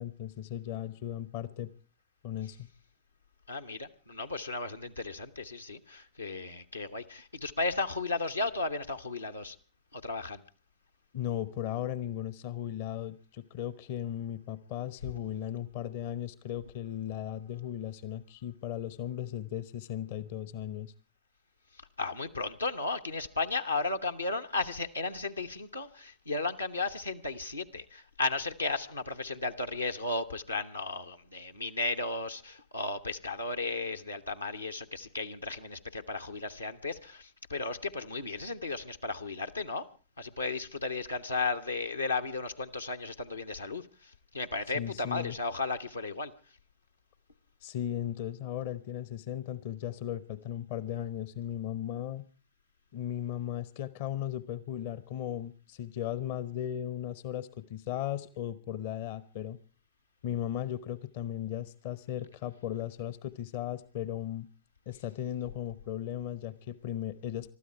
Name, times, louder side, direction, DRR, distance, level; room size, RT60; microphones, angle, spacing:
voice 1, 0.0-1.7 2.2-2.7 11.1-20.9 44.7-45.3 47.6-52.3 52.9-59.6 60.2-64.5 64.9-67.5, left 11 dB, 50° left, 18 dB, 0.8 m, -36 dB
voice 2, 3.5-9.6 9.9-10.4 22.0-39.8 40.2-46.3, left 3 dB, 85° left, 5 dB, 1.0 m, -34 dB
23.0 x 13.0 x 4.5 m, 0.36 s
figure-of-eight pair, 90°, 0 cm